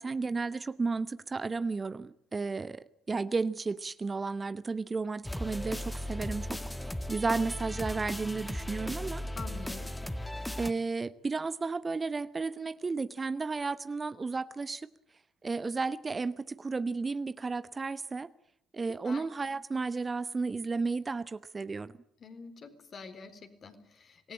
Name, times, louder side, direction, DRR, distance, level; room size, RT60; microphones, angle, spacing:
voice 1, 0.0-9.2 10.6-14.9 15.4-18.3 18.7-21.9, right 4 dB, 30° right, 0.9 m, -33 dB
sound 1, 5.2-10.7, left 1 dB, 10° left, 1.8 m, -37 dB
voice 2, 9.4-9.9 19.0-19.2 22.2-24.3, left 5 dB, 45° left, 4.0 m, -46 dB
26.0 x 19.5 x 8.7 m
hypercardioid pair, 50°, 0 cm